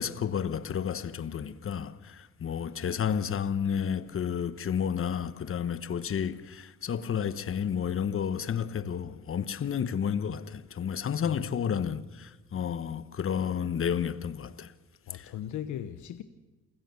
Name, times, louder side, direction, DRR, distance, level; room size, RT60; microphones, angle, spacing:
voice 1, 0.0-14.7 15.1-15.3, left 8 dB, 45° left, 1.1 m, -31 dB
voice 2, 11.1-11.9 15.1-16.2, left 10 dB, 75° left, 1.0 m, -39 dB
28.5 x 16.0 x 7.0 m
cardioid pair, 90°, 30 cm